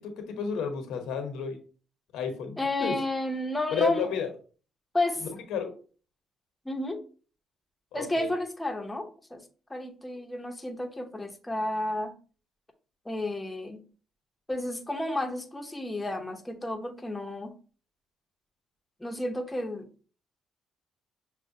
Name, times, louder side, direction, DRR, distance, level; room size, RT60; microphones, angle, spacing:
voice 1, 0.0-1.6 2.1-2.9 3.7-4.3 5.5-5.7 7.9-8.3, left 7 dB, 90° left, 5 dB, 0.8 m, -32 dB
voice 2, 2.6-4.1 4.9-5.3 6.6-7.0 7.9-9.4 9.7-12.2 13.0-13.8 14.5-17.5 19.0-20.0, left 1 dB, 10° left, 3 dB, 0.7 m, -31 dB
6.1 x 2.1 x 2.6 m, 0.38 s
cardioid pair, 90°, 0 cm